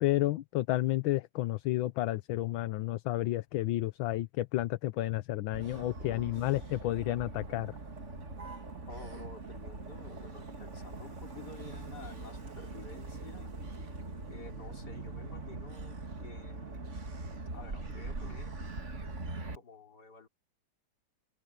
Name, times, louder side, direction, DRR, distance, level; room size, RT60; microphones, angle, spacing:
voice 1, 0.0-7.7, left 16 dB, 75° left, 1.4 m, -31 dB
Motor vehicle (road), 5.5-19.6, right 3 dB, 35° right, 2.3 m, -42 dB
voice 2, 6.0-6.8 8.9-13.6 14.3-16.9 17.5-18.6 19.5-20.3, left 4 dB, 50° left, 4.0 m, -51 dB
omnidirectional pair, 2.3 m